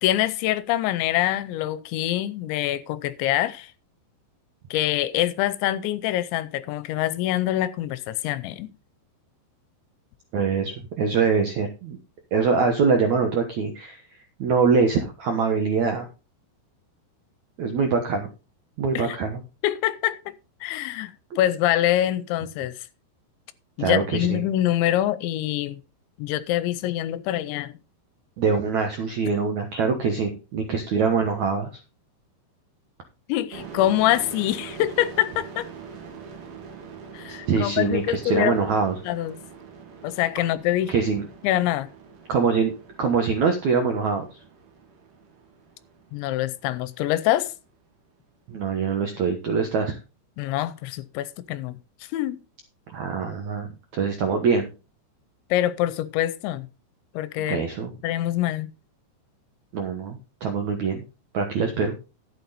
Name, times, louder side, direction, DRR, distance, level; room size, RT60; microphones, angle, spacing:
voice 1, 0.0-3.7 4.7-8.7 18.9-19.2 19.6-20.2 20.6-22.9 23.8-25.8 26.2-27.8 33.3-35.7 37.1-38.6 39.1-39.4 40.0-40.9 41.4-41.9 46.1-47.5 50.4-51.8 52.1-52.4 55.5-56.7 57.1-57.6 58.0-58.7, left 13 dB, 85° left, 3.0 m, -25 dB
voice 2, 10.3-12.0 12.3-14.0 14.4-16.1 17.6-18.3 18.8-19.4 23.8-24.4 28.4-31.7 37.3-39.0 40.9-41.2 42.3-42.7 43.0-44.2 48.5-50.0 52.9-53.7 53.9-54.7 57.5-57.9 59.7-61.0 61.3-62.0, right 5 dB, 75° right, 1.7 m, -23 dB
sound 1, 33.5-47.0, right 6 dB, 55° right, 4.3 m, -44 dB
12.5 x 8.3 x 4.1 m
omnidirectional pair, 5.3 m